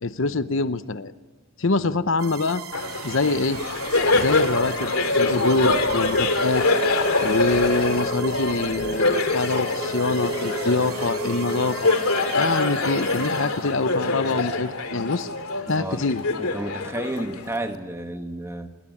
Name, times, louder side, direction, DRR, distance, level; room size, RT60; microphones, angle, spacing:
voice 1, 0.0-1.1 1.6-2.6 3.0-3.6 4.1-4.9 5.2-6.7 7.2-12.0 12.3-15.3 15.7-16.2, left 3 dB, 60° left, 13 dB, 0.8 m, -24 dB
sound 1, 2.2-14.0, right 8 dB, 80° right, 3.2 m, -39 dB
Laughter, 2.7-17.7, left 2 dB, 90° left, 2.8 m, -25 dB
sound 2, 4.9-11.7, left 1 dB, 5° left, 6.6 m, -34 dB
voice 2, 15.7-16.0 16.4-18.7, right 1 dB, 10° right, 6 dB, 1.7 m, -31 dB
26.5 x 21.5 x 9.8 m, 1.3 s
head